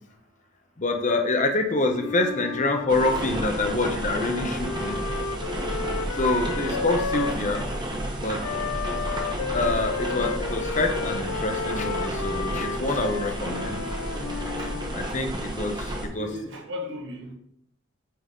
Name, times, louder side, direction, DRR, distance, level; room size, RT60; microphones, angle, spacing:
voice 1, 0.8-5.0 6.1-7.6 8.2-8.4 9.5-13.8 14.9-16.3, left 2 dB, 35° left, 4 dB, 0.8 m, -26 dB
Wind instrument woodwind instrument, 1.9-7.7 8.4-14.9, left 5 dB, 85° left, 0.5 m, -33 dB
sound 1, 2.9-16.1, right 1 dB, 20° right, 0.9 m, -31 dB
voice 2, 16.2-17.4, left 1 dB, 60° right, 0 dB, 1.5 m, -36 dB
8.6 x 4.1 x 3.7 m, 0.71 s
head